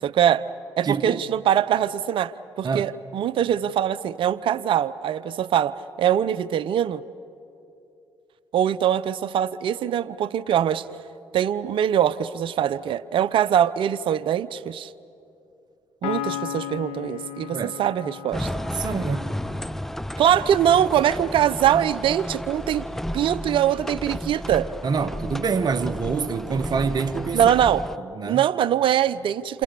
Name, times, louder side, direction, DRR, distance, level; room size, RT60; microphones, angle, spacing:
voice 1, 0.0-0.4 0.8-7.0 8.5-10.9 11.3-14.9 16.0-18.5 20.2-22.9 23.1-24.7 27.3-27.8 28.3-29.6, right 10 dB, 65° right, 0.8 m, -22 dB
voice 2, 0.8-1.2 2.6-2.9 17.5-17.7 18.7-19.3 24.8-27.4 28.1-28.5, right 5 dB, 45° right, 1.4 m, -26 dB
Piano, 16.0-19.6, left 12 dB, 85° left, 1.0 m, -35 dB
sound 1, 18.3-28.0, equal, 5° left, 0.6 m, -32 dB
28.5 x 28.0 x 6.9 m
hypercardioid pair, 55°, 9 cm